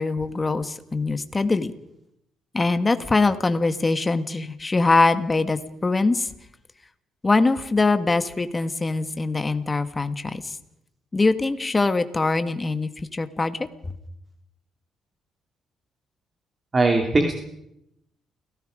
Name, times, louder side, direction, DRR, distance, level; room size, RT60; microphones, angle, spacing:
voice 1, 0.0-1.7 2.5-6.3 7.2-10.6 11.1-13.6, left 3 dB, 25° left, 10 dB, 1.7 m, -23 dB
voice 2, 16.7-17.3, right 2 dB, 30° right, 4 dB, 2.6 m, -19 dB
29.5 x 17.5 x 5.1 m, 0.80 s
cardioid pair, 90°, 0 cm